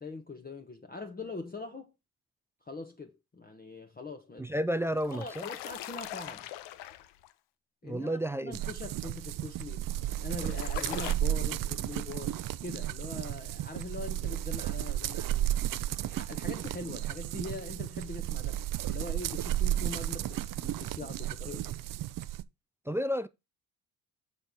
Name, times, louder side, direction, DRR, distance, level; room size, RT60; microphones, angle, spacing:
voice 1, 0.0-1.9 2.6-4.5 5.1-6.5 7.8-9.9 10.2-15.5 16.0-18.6 18.9-21.8, left 3 dB, 20° left, 1.1 m, -42 dB
voice 2, 4.4-5.4 7.8-8.6 22.9-23.3, equal, 5° right, 0.3 m, -31 dB
sound 1, 4.8-7.3 9.9-11.1, left 13 dB, 70° left, 0.7 m, -41 dB
sound 2, 8.5-22.4, right 13 dB, 45° right, 0.6 m, -33 dB
5.7 x 4.3 x 5.2 m
hypercardioid pair, 60°, 44 cm